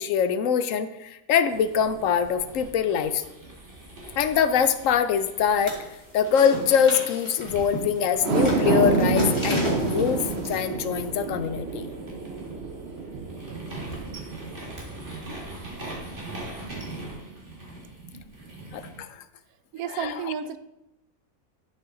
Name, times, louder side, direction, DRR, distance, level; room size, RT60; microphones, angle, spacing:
voice 1, 0.0-3.2 4.2-5.8 6.1-11.9 18.7-19.2 20.0-20.1, left 7 dB, 70° left, 11 dB, 0.9 m, -24 dB
sound 1, 1.5-6.9 7.4-19.0, right 2 dB, 35° right, 2.1 m, -41 dB
sound 2, 5.6-5.9 6.2-10.6, equal, 20° left, 2.2 m, -33 dB
sound 3, 8.1-14.6 15.1-15.2, right 3 dB, 50° right, 1.0 m, -27 dB
voice 2, 19.7-20.6, right 7 dB, 90° right, 12 dB, 1.1 m, -31 dB
11.0 x 5.5 x 3.8 m, 0.90 s
omnidirectional pair, 1.5 m